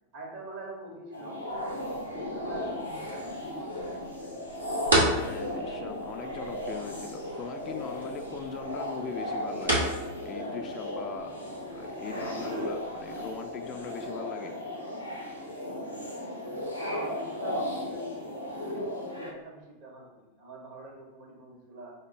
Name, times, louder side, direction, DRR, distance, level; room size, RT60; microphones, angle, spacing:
voice 1, 0.1-1.4 1.8-4.4 16.7-21.9, right 1 dB, 50° right, -1 dB, 1.4 m, -45 dB
sound 1, 1.1-19.3, left 1 dB, 90° left, 0.8 m, -36 dB
sound 2, 1.5-14.1, right 1 dB, 75° right, 1.3 m, -35 dB
voice 2, 4.9-9.9 10.2-11.4 11.7-14.6, left 7 dB, 30° left, 5 dB, 0.4 m, -40 dB
5.1 x 2.1 x 4.8 m, 1.1 s
figure-of-eight pair, 90°, 0 cm